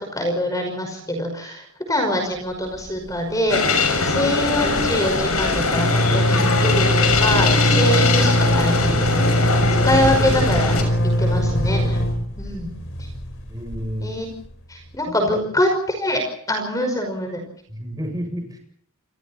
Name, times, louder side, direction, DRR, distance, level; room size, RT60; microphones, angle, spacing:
voice 1, 0.0-3.6 4.0-9.2 9.5-10.9 11.2-12.0 12.4-12.7 13.0-13.1 14.0-14.3 14.7-17.4, left 1 dB, 15° left, 5 dB, 5.4 m, -24 dB
sound 1, 2.7-3.2 3.5-3.6 3.8-14.5, equal, 60° left, 5.1 m, -22 dB
sound 2, 3.5-10.8, left 3 dB, 80° left, 6.5 m, -21 dB
voice 2, 13.5-14.1 15.1-15.3 17.7-18.6, equal, 15° right, 3 dB, 8.0 m, -30 dB
29.0 x 27.5 x 4.4 m, 0.62 s
head